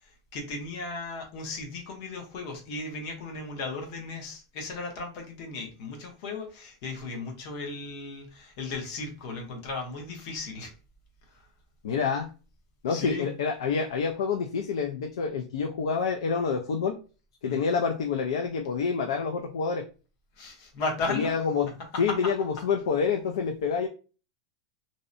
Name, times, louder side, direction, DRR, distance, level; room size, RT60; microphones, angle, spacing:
voice 1, 0.0-10.7 11.3-11.4 12.9-13.3 17.4-17.7 20.4-21.3, left 3 dB, 40° left, 2 dB, 0.7 m, -36 dB
voice 2, 11.8-12.3 12.8-17.0 17.4-19.9 21.1-21.7 22.0-23.9, left 5 dB, 85° left, 3 dB, 0.4 m, -27 dB
2.6 x 2.0 x 2.5 m, 0.34 s
supercardioid pair, 175°, 3 cm